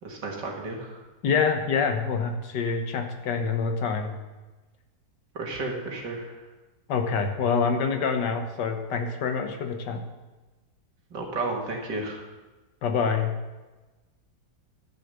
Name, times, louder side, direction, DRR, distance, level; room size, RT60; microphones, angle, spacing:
voice 1, 0.0-1.0 5.3-6.4 11.1-12.2, right 2 dB, 80° right, 0 dB, 2.5 m, -32 dB
voice 2, 1.2-4.2 6.9-10.0 12.8-13.3, left 5 dB, 80° left, 6 dB, 1.7 m, -26 dB
11.5 x 6.7 x 6.8 m, 1.2 s
omnidirectional pair, 1.8 m